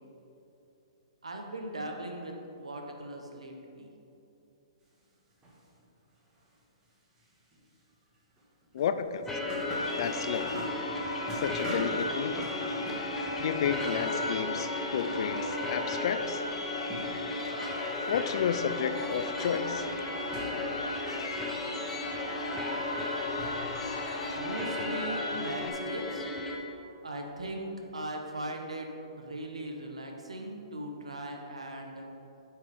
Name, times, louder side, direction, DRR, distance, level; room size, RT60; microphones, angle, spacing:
voice 1, 1.2-3.9 24.3-26.3 27.0-28.9 29.2-32.1, right 1 dB, 85° right, 2 dB, 1.0 m, -39 dB
sound 1, 5.3-5.8 6.3-6.5 7.2-7.6 8.3-14.4 14.7-15.9 16.1-17.3 17.6-24.1, equal, 20° right, 1.5 m, -44 dB
voice 2, 8.7-9.3 10.0-10.6 11.3-12.6 13.1-16.4 18.1-19.9, left 7 dB, 55° left, 11 dB, 0.4 m, -32 dB
sound 2, 9.3-26.6, left 1 dB, 10° left, 0.8 m, -35 dB
Crowd, 9.6-25.7, left 3 dB, 80° left, 0.9 m, -39 dB
8.4 x 4.8 x 4.9 m, 2.8 s
hypercardioid pair, 125°, 3 cm